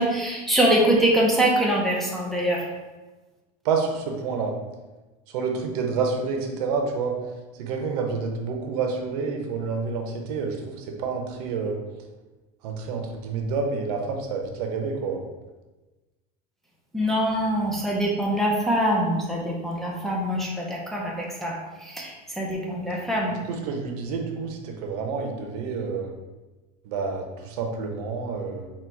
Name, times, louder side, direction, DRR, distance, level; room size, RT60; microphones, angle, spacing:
voice 1, 0.0-2.6 16.9-23.4, right 1 dB, ahead, -4 dB, 0.6 m, -24 dB
voice 2, 3.6-4.5 5.3-7.2 7.6-11.8 12.6-15.2 23.3-26.1 26.8-28.7, right 5 dB, 80° right, 2 dB, 0.8 m, -28 dB
4.2 x 2.3 x 4.4 m, 1.2 s
cardioid pair, 150°, 19 cm